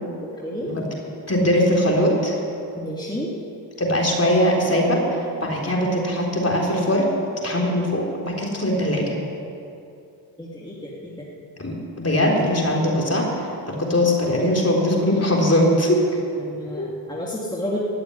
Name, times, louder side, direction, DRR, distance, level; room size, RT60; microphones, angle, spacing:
voice 1, 1.3-2.4 3.8-7.1 7.4-9.2 11.6-16.0 16.8-16.9, left 1 dB, 30° left, -2 dB, 4.2 m, -21 dB
voice 2, 2.7-3.3 10.4-11.1 16.4-17.8, equal, 10° left, -5 dB, 2.7 m, -31 dB
16.0 x 6.9 x 9.8 m, 2.6 s
supercardioid pair, 45°, 45 cm